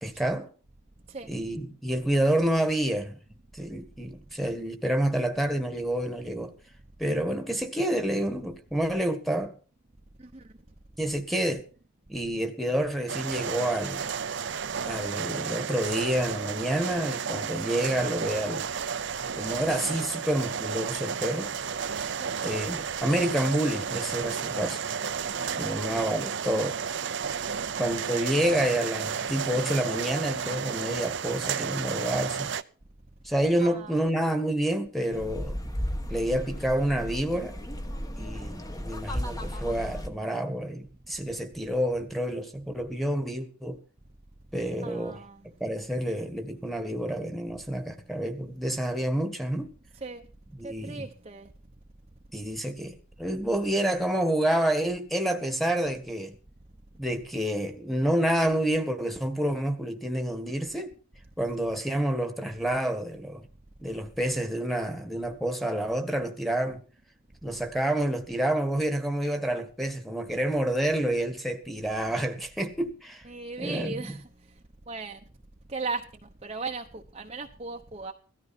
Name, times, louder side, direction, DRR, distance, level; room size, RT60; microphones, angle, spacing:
voice 1, 0.0-0.5 1.3-3.2 3.5-6.5 7.0-9.5 11.0-11.6 12.1-14.1 14.8-18.7 19.4-21.5 22.0-22.1 22.4-24.8 25.6-26.7 27.8-32.5 33.2-35.6 36.1-37.5 38.2-43.8 44.5-45.2 45.6-49.7 50.5-51.1 52.3-56.4 56.9-60.9 61.4-63.5 63.8-66.8 67.4-73.2 73.6-74.2, right 1 dB, ahead, 1.7 m, -28 dB
sound 1, 13.1-32.6, right 6 dB, 55° right, 0.6 m, -32 dB
voice 2, 25.4-25.7 33.6-34.0 44.8-45.4 50.0-50.2 50.6-51.5 73.3-74.2 74.9-75.2 75.7-76.0 76.4-78.1, right 4 dB, 30° right, 0.9 m, -37 dB
sound 2, 35.1-40.1, equal, 15° left, 1.3 m, -34 dB
17.0 x 13.5 x 4.3 m
head